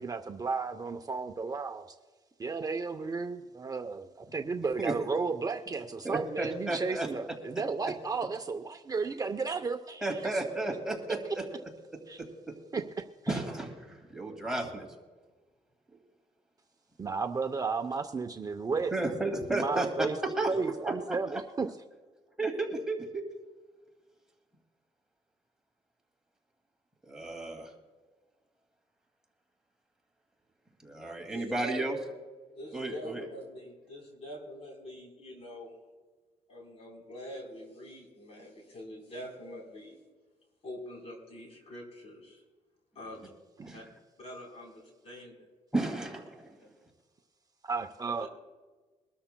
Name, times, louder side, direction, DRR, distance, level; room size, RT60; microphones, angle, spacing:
voice 1, 0.0-1.9 2.4-10.4 12.1-12.2 12.7-12.8 17.0-18.9 19.5-20.2 20.5-21.7 47.6-48.3, right 4 dB, 30° right, 5 dB, 0.6 m, -33 dB
voice 2, 6.0-7.1 10.0-11.5 13.3-14.9 18.9-21.4 22.4-23.2 27.0-27.7 30.8-32.0 32.7-33.2 43.6-43.8 45.7-46.5, right 2 dB, 5° right, 0 dB, 2.2 m, -33 dB
voice 3, 31.3-31.8 32.5-35.7 36.5-40.0 40.6-42.4 43.0-43.2 43.7-43.8 44.2-45.5 46.6-46.7 48.2-48.3, left 1 dB, 50° left, 0 dB, 3.9 m, -45 dB
23.5 x 13.0 x 2.2 m, 1.3 s
cardioid pair, 110°, 13 cm